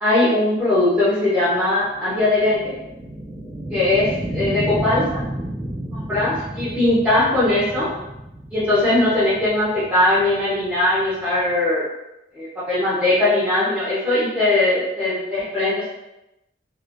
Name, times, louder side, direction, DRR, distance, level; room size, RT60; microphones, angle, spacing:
voice 1, 0.0-2.7 3.7-4.1 4.4-5.2 5.9-7.9 8.5-11.8 12.3-15.9, left 2 dB, 5° right, -13 dB, 0.7 m, -20 dB
sound 1, 0.8-11.5, right 1 dB, 50° right, 1.0 m, -32 dB
2.9 x 2.3 x 2.5 m, 0.91 s
head